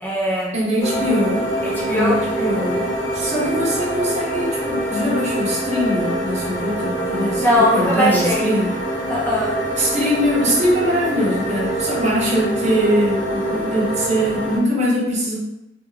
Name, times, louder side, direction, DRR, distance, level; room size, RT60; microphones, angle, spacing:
voice 1, 0.0-0.5 1.6-2.2 7.4-8.5 9.1-9.6, equal, 10° left, -5 dB, 0.6 m, -20 dB
voice 2, 0.5-1.5 1.9-8.7 9.8-15.3, equal, 40° right, -7 dB, 1.0 m, -22 dB
sound 1, 0.8-14.6, right 1 dB, 30° left, 1.4 m, -25 dB
3.4 x 2.5 x 3.1 m, 0.88 s
head